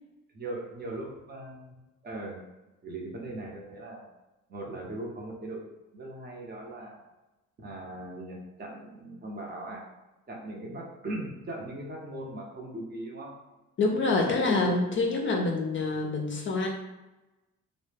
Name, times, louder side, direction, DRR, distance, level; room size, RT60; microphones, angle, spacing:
voice 1, 0.3-2.4 2.8-4.0 4.5-5.6 5.9-7.0 7.6-9.8 10.3-13.3 13.9-14.8, right 2 dB, 30° right, -1 dB, 0.6 m, -39 dB
voice 2, 13.8-16.7, left 3 dB, 40° left, 1 dB, 0.4 m, -26 dB
2.1 x 2.0 x 3.2 m, 1.1 s
cardioid pair, 90°, 30 cm